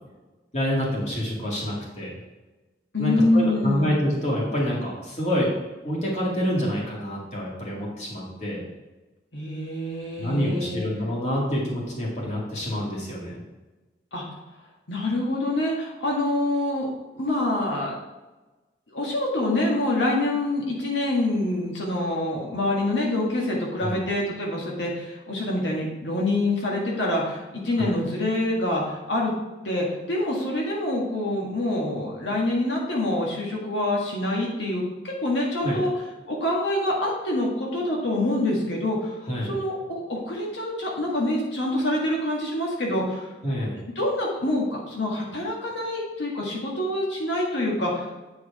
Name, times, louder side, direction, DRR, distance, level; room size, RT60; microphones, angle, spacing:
voice 1, 0.5-2.1 3.0-5.5 5.8-8.6 10.2-13.4 23.8-24.0 27.8-27.9 35.6-35.8 39.3-39.5 43.4-43.7, equal, 40° left, -4 dB, 2.2 m, -27 dB
voice 2, 2.9-3.9 9.3-10.9 14.1-14.2 14.9-16.9 17.1-17.9 18.9-29.3 29.6-35.9 36.3-39.1 39.4-43.3 43.9-48.1, left 1 dB, 85° left, -2 dB, 1.7 m, -26 dB
8.7 x 4.8 x 4.8 m, 1.1 s
head